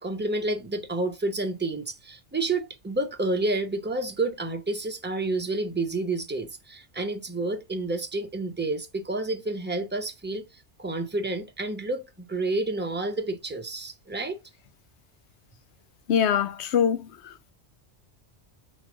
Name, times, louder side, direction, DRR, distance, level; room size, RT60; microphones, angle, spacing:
voice 1, 0.0-10.4 10.8-14.4, right 2 dB, 10° right, 0.8 m, -29 dB
voice 2, 16.1-17.5, left 8 dB, 75° left, 0.9 m, -24 dB
5.6 x 4.2 x 4.9 m
omnidirectional pair, 1.2 m